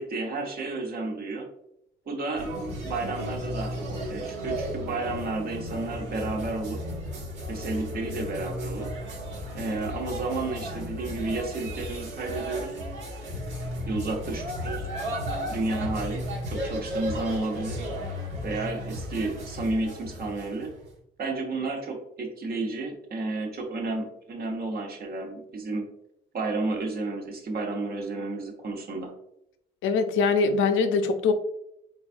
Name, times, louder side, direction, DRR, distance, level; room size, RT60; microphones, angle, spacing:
voice 1, 0.0-1.5 2.1-2.5 2.8-6.8 7.5-8.9 9.5-12.7 13.9-14.9 15.4-17.8 18.4-20.7 21.2-25.9 26.3-29.1, right 3 dB, 50° right, 2 dB, 1.0 m, -32 dB
sound 1, 2.4-20.9, equal, 70° right, 1.3 m, -34 dB
voice 2, 29.8-31.3, left 4 dB, 85° left, 8 dB, 0.5 m, -22 dB
3.9 x 3.5 x 2.5 m, 0.80 s
cardioid pair, 90°, 20 cm